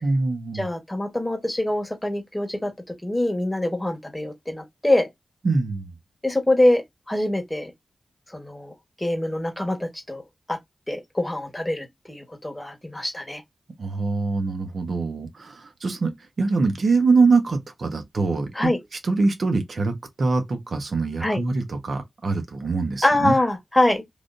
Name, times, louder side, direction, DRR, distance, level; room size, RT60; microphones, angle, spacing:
voice 1, 0.0-0.7 5.4-5.9 13.8-18.7 19.0-23.3, right 3 dB, 70° right, 0.9 m, -24 dB
voice 2, 0.5-2.7 3.0-5.1 6.2-6.8 7.1-7.7 8.3-8.7 9.0-10.2 10.5-10.6 10.9-13.4 18.5-18.8 21.2-21.4 23.0-24.0, left 1 dB, 15° left, 1.3 m, -24 dB
3.3 x 2.7 x 2.5 m
cardioid pair, 50°, 0 cm